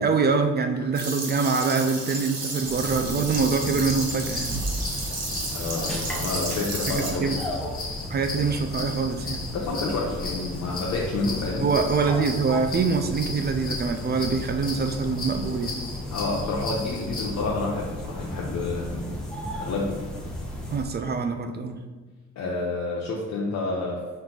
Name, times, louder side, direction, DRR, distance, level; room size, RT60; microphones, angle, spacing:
voice 1, 0.0-4.6 6.9-7.4 8.1-9.4 11.6-15.8 20.7-21.8, right 4 dB, 35° right, 6 dB, 0.4 m, -25 dB
sound 1, 0.9-7.1, right 2 dB, 55° right, 1.2 m, -33 dB
sound 2, 2.6-20.8, left 1 dB, ahead, 0.8 m, -34 dB
sound 3, 3.3-17.3, left 3 dB, 30° left, 0.9 m, -37 dB
voice 2, 5.5-7.3 9.5-11.7 16.1-19.1 19.4-20.1 22.4-24.0, left 3 dB, 70° left, -3 dB, 0.7 m, -29 dB
4.5 x 2.6 x 3.7 m, 1.3 s
cardioid pair, 90°, 30 cm